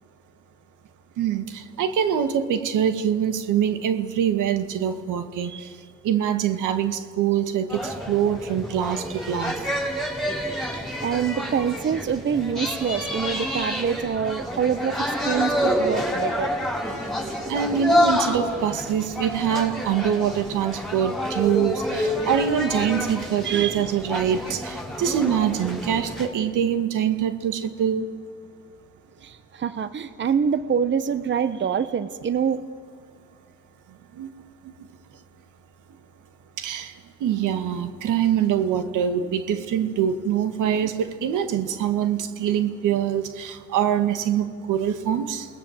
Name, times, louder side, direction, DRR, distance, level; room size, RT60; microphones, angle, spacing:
voice 1, 1.2-5.5 6.0-9.5 17.5-28.1 34.2-34.3 36.6-36.9 37.2-45.5, right 9 dB, 85° right, 9 dB, 1.9 m, -24 dB
sound 1, 7.7-26.3, equal, ahead, 6.6 m, -28 dB
voice 2, 10.7-16.5 23.4-23.9 29.2-32.6, right 7 dB, 40° right, 13 dB, 0.9 m, -26 dB
29.0 x 20.0 x 7.4 m, 2.2 s
cardioid pair, 90°, 30 cm